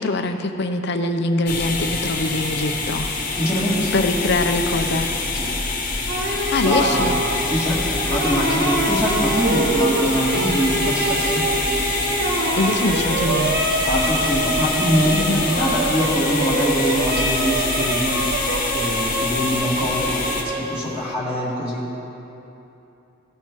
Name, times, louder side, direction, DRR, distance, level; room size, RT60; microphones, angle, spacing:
voice 1, 0.0-3.1 3.9-5.1 6.5-7.1 12.6-13.6 15.1-15.4, left 2 dB, 60° left, 7 dB, 0.6 m, -23 dB
sound 1, 1.5-20.4, left 3 dB, 40° left, 1.2 m, -26 dB
voice 2, 3.4-3.9 5.3-5.5 6.6-7.1 7.5-7.8 8.1-11.4 13.8-18.4 18.7-21.8, equal, 5° right, -8 dB, 1.8 m, -23 dB
sound 2, 6.1-21.1, right 2 dB, 55° right, 1.0 m, -25 dB
sound 3, 8.7-19.6, equal, 30° right, 2.5 m, -34 dB
17.0 x 5.9 x 4.5 m, 2.9 s
head